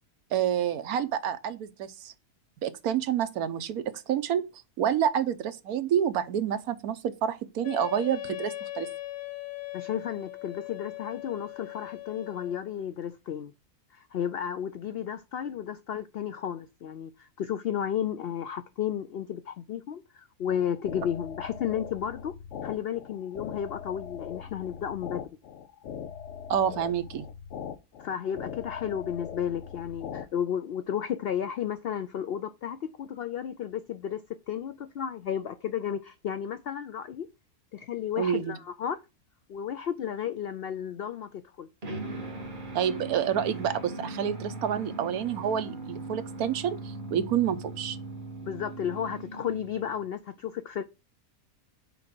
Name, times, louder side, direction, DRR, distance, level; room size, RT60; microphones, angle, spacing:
voice 1, 0.3-2.1 2.6-4.4 4.8-8.9 26.5-27.3 38.2-38.6 42.7-48.0, right 9 dB, 80° right, 1.2 m, -28 dB
Wind instrument woodwind instrument, 7.6-12.7, left 17 dB, 40° left, 1.1 m, -40 dB
voice 2, 9.7-13.5 13.9-22.3 22.6-25.3 28.0-34.2 34.5-37.3 37.7-39.0 39.5-41.7 48.4-50.8, left 9 dB, 85° left, 0.5 m, -33 dB
sound 1, 20.5-30.3, left 8 dB, 60° left, 0.9 m, -41 dB
sound 2, 41.8-50.1, right 2 dB, 35° right, 1.5 m, -39 dB
5.1 x 4.8 x 6.0 m
omnidirectional pair, 1.6 m